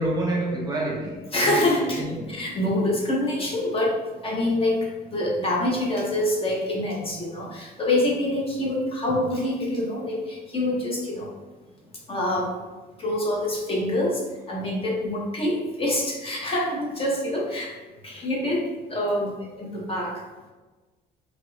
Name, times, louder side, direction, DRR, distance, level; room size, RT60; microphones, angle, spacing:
voice 1, 0.0-2.4, right 1 dB, 25° right, -2 dB, 0.6 m, -28 dB
voice 2, 1.3-2.0 2.3-11.3 12.1-12.5 13.0-14.2 14.5-17.7 18.0-20.2, left 1 dB, 35° left, -3 dB, 0.9 m, -26 dB
3.0 x 2.5 x 3.1 m, 1.2 s
cardioid pair, 110°, 17 cm